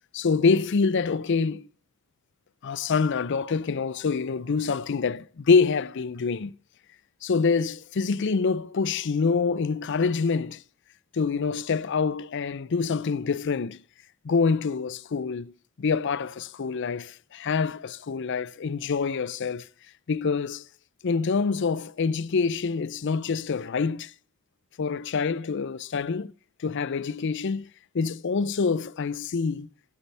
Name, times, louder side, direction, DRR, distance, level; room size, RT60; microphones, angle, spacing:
voice 1, 0.1-1.7 2.6-6.5 7.2-10.6 11.1-13.8 14.2-15.5 15.8-19.7 20.1-20.6 21.0-24.1 24.8-26.3 26.6-27.7 27.9-29.7, left 5 dB, 55° left, 0.5 m, -26 dB
15.5 x 8.3 x 3.3 m
head